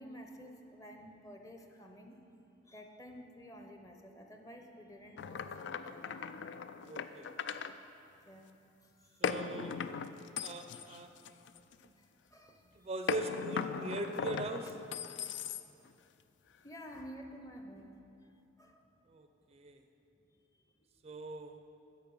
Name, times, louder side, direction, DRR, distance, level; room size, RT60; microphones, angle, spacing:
voice 1, 0.0-2.2 2.7-6.2 7.5-7.8 8.3-8.4 8.8-9.3 11.9-12.7 14.6-14.7 16.6-18.9 20.2-20.3 20.8-20.9, equal, 20° left, 4 dB, 0.7 m, -52 dB
sound 1, 5.2-7.7 9.2-11.9 13.1-15.9, left 6 dB, 75° left, 0.4 m, -39 dB
voice 2, 6.9-7.3 9.2-9.8 10.4-11.1 12.8-14.7 19.1-19.8 21.0-21.6, right 2 dB, 35° right, 6 dB, 0.4 m, -40 dB
10.5 x 7.2 x 5.4 m, 2.7 s
head